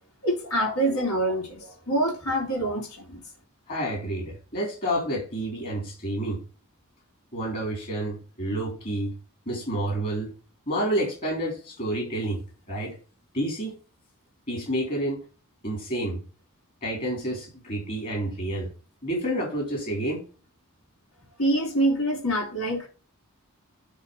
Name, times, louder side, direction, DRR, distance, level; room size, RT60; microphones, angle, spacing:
voice 1, 0.2-3.2 21.4-22.9, right 1 dB, 75° left, 3.6 m, -25 dB
voice 2, 3.7-6.4 7.3-9.1 9.5-10.3 10.7-12.4 12.7-12.9 13.3-13.8 14.5-15.2 15.6-16.2 16.8-18.7 19.0-20.2, right 1 dB, 40° left, 3.7 m, -29 dB
10.0 x 3.5 x 5.3 m
head